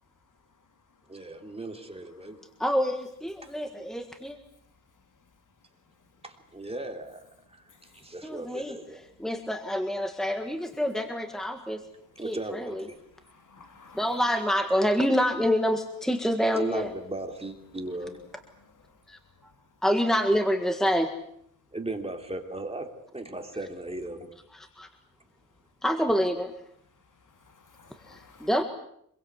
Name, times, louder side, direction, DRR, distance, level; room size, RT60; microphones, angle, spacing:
voice 1, 1.1-2.4 6.2-7.2 7.6-7.7 7.9-9.0 12.2-13.0 16.5-18.2 21.7-24.3, right 2 dB, 15° right, 3.2 m, -36 dB
voice 2, 2.6-4.4 8.2-11.8 12.2-12.8 13.9-16.9 19.1-19.5 19.8-21.1 24.5-24.9 25.8-26.5 28.1-28.6, equal, ahead, 1.6 m, -27 dB
voice 3, 13.2-14.2 27.4-28.5, left 4 dB, 65° left, 2.9 m, -54 dB
25.5 x 22.5 x 8.2 m
wide cardioid pair, 165°, 34 cm